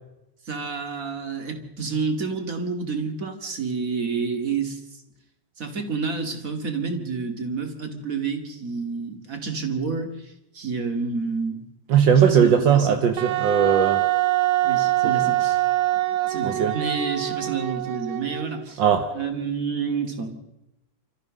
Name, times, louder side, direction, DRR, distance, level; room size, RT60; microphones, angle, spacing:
voice 1, 0.4-5.0 5.6-11.6 12.3-13.0 14.6-15.6 16.1-18.8 19.1-20.4, right 5 dB, 30° right, 5 dB, 2.5 m, -29 dB
voice 2, 11.9-14.0 16.4-16.7 18.8-19.0, right 7 dB, 55° right, 6 dB, 1.3 m, -18 dB
Wind instrument woodwind instrument, 13.2-18.6, right 16 dB, 80° right, 1.1 m, -24 dB
28.0 x 14.5 x 6.5 m, 0.93 s
omnidirectional pair, 3.3 m